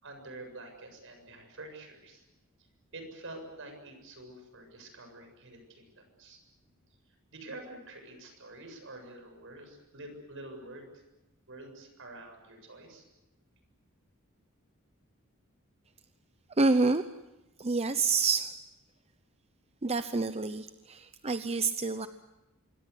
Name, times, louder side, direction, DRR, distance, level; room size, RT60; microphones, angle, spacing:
voice 1, 0.0-2.2 2.9-6.4 7.3-10.9 11.5-13.0, right 2 dB, 65° right, 5 dB, 7.4 m, -47 dB
voice 2, 16.6-17.0 17.6-18.5 19.8-22.1, right 3 dB, 30° right, 10 dB, 0.8 m, -28 dB
26.0 x 23.5 x 8.3 m, 0.98 s
head